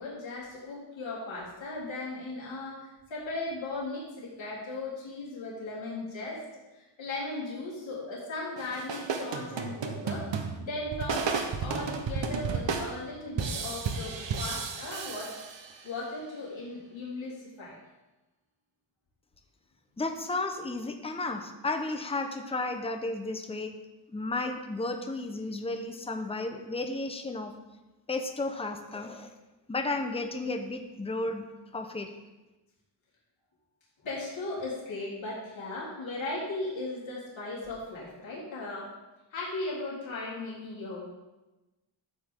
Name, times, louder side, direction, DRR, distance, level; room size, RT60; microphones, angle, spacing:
voice 1, 0.0-6.4 6.7-10.3 10.6-15.3 15.8-17.8 20.6-20.7 34.0-38.9 39.3-41.0, left 2 dB, 85° left, -7 dB, 3.8 m, -37 dB
sound 1, 8.6-16.0, right 5 dB, 75° right, 1.1 m, -33 dB
voice 2, 20.0-23.7 24.1-27.5 28.1-29.3 29.7-31.4 31.7-32.1, left 2 dB, 15° left, 5 dB, 0.8 m, -33 dB
13.0 x 8.4 x 3.8 m, 1.1 s
wide cardioid pair, 155°, 45 cm